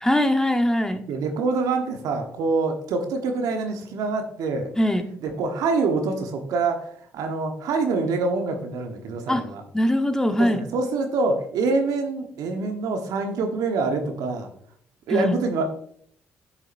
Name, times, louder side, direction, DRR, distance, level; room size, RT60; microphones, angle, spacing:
voice 1, 0.0-1.0 4.8-5.0 9.3-9.4 9.7-10.6 15.1-15.4, left 1 dB, 10° left, 7 dB, 1.0 m, -21 dB
voice 2, 1.1-4.7 5.2-9.6 10.4-14.5 15.1-15.6, right 3 dB, 70° right, 5 dB, 1.1 m, -25 dB
9.5 x 6.2 x 2.6 m, 0.63 s
hypercardioid pair, 45°, 6 cm